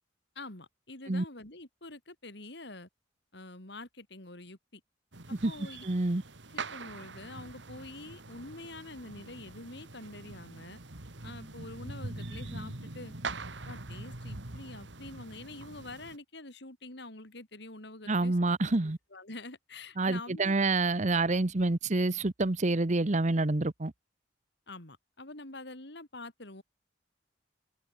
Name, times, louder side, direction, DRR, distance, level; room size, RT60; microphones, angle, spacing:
voice 1, 0.4-2.9 3.3-4.8 5.3-5.8 6.5-10.8 11.2-13.1 13.7-18.4 19.1-20.6 24.7-26.6, left 2 dB, 65° left, 4.2 m, -46 dB
sound 1, 5.1-16.2, right 3 dB, 75° right, 2.4 m, -43 dB
voice 2, 5.8-6.2 18.1-19.0 20.0-23.9, right 2 dB, 40° right, 1.0 m, -27 dB
head